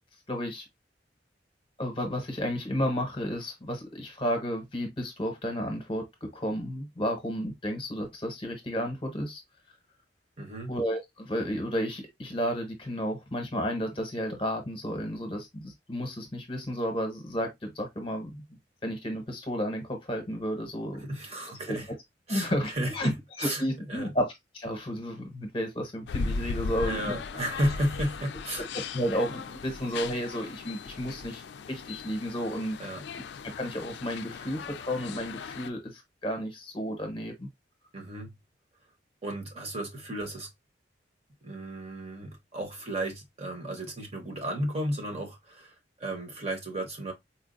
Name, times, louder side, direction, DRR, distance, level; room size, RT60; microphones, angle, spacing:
voice 1, 0.3-0.6 1.8-9.4 10.7-18.4 18.8-21.0 21.7-21.8 22.3-23.1 23.4-24.3 24.5-27.2 28.7-31.4 31.7-32.8 33.6-37.5, equal, 30° left, 0.9 m, -32 dB
voice 2, 10.4-10.7 21.0-21.9 22.3-23.6 23.9-24.1 26.8-28.7 32.8-33.0 37.9-38.3 39.2-40.5 41.4-47.1, right 1 dB, 35° right, 1.0 m, -33 dB
sound 1, 26.1-35.7, left 4 dB, 65° left, 0.3 m, -37 dB
4.3 x 2.3 x 2.5 m
head